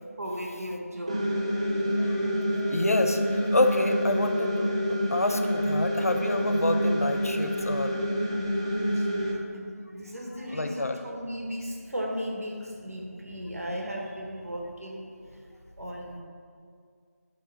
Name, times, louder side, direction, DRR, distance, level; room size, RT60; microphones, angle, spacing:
voice 1, 0.2-1.2 8.9-9.1 9.5-15.5 15.8-16.2, equal, 65° right, -1 dB, 1.5 m, -36 dB
sound 1, 1.1-9.3, equal, 20° right, 0.5 m, -27 dB
voice 2, 2.0-2.3 2.6-7.9 10.5-11.0, left 2 dB, 60° left, 6 dB, 0.6 m, -28 dB
7.5 x 3.6 x 5.7 m, 2.2 s
figure-of-eight pair, 175°, 9 cm